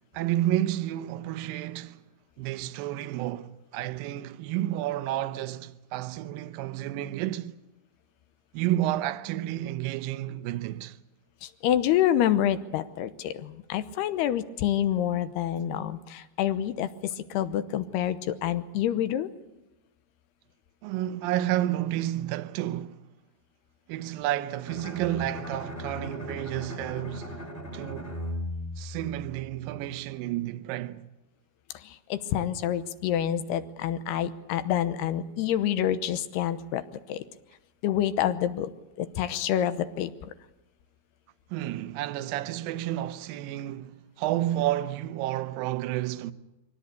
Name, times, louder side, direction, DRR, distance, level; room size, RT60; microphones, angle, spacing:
voice 1, 0.1-2.0 2.4-7.5 8.5-11.0 20.8-23.0 23.9-27.4 27.7-28.2 28.8-31.0 41.5-46.3, right 14 dB, 75° right, 2.4 m, -31 dB
voice 2, 11.4-19.3 31.7-37.2 37.8-38.7 39.0-40.3, left 11 dB, 85° left, 3.0 m, -27 dB
Bowed string instrument, 24.7-29.7, equal, 15° left, 2.1 m, -38 dB
24.0 x 17.5 x 8.3 m
omnidirectional pair, 4.6 m